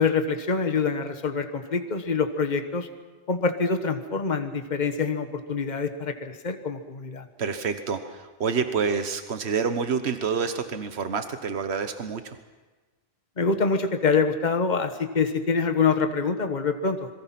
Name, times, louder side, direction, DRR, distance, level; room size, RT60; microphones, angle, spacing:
voice 1, 0.0-2.9 3.3-7.3 13.4-17.1, left 5 dB, 45° left, 7 dB, 1.4 m, -25 dB
voice 2, 7.4-12.4, right 5 dB, 80° right, 8 dB, 1.4 m, -28 dB
26.0 x 23.0 x 5.9 m, 1.2 s
omnidirectional pair, 1.1 m